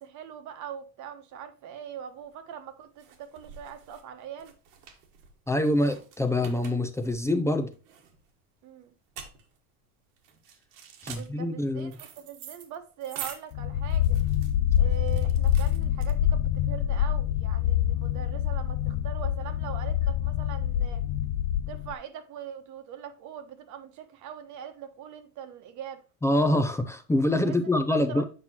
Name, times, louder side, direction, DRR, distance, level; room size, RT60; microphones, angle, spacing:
voice 1, 0.0-4.5 8.6-8.9 11.1-14.2 14.8-21.0 21.7-26.0 27.4-28.2, right 8 dB, 50° right, 1.2 m, -42 dB
sound 1, 2.2-16.6, right 8 dB, 85° right, 1.6 m, -46 dB
voice 2, 5.5-7.7 11.0-11.9 26.2-28.2, left 1 dB, 5° left, 0.5 m, -25 dB
sound 2, 13.5-21.9, left 11 dB, 75° left, 0.6 m, -26 dB
7.8 x 5.7 x 2.9 m
cardioid pair, 135°, 37 cm